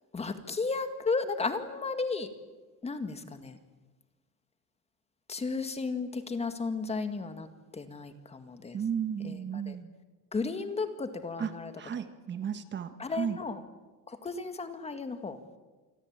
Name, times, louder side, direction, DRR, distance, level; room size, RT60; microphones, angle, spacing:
voice 1, 0.1-2.3 2.8-3.6 5.3-7.5 7.7-8.8 9.2-9.8 10.3-11.7 13.0-13.6 14.1-15.4, left 4 dB, 20° left, 8 dB, 1.9 m, -34 dB
voice 2, 8.7-10.0 11.4-13.4, right 7 dB, 35° right, 9 dB, 1.5 m, -34 dB
28.5 x 22.0 x 8.9 m, 1.2 s
cardioid pair, 160°, 33 cm